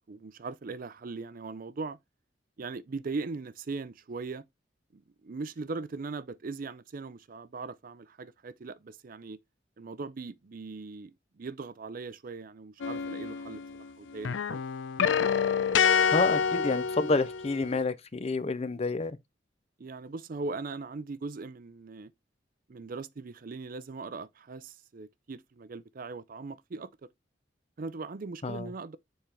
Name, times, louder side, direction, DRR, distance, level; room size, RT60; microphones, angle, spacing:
voice 1, 0.1-2.0 2.6-4.4 4.9-9.4 9.8-14.6 19.8-22.1 22.7-26.9 27.8-29.0, right 3 dB, 50° right, 0.5 m, -39 dB
sound 1, 12.8-13.9 14.2-17.7, left 6 dB, 90° left, 0.5 m, -27 dB
voice 2, 16.1-19.2 28.4-28.7, left 3 dB, 35° left, 0.5 m, -29 dB
6.8 x 4.4 x 3.3 m
head